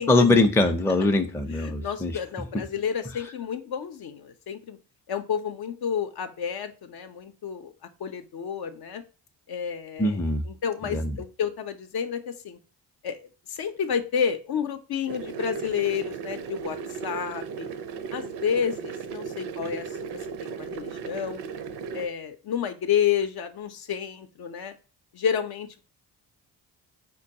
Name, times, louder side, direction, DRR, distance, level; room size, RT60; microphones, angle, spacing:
voice 1, 0.1-2.2 2.5-2.6 10.0-10.4 10.8-11.2, left 2 dB, 5° left, 5 dB, 0.4 m, -22 dB
voice 2, 1.5-4.8 5.1-7.7 8.0-9.0 9.5-10.2 10.5-12.6 13.0-13.2 13.5-17.7 18.1-19.8 20.4-21.4 21.9-24.7 25.1-25.8, left 8 dB, 65° left, 8 dB, 0.6 m, -30 dB
sound 1, 15.1-22.1, right 6 dB, 70° right, 0.5 m, -36 dB
4.4 x 2.3 x 2.6 m, 0.33 s
cardioid pair, 70°, 41 cm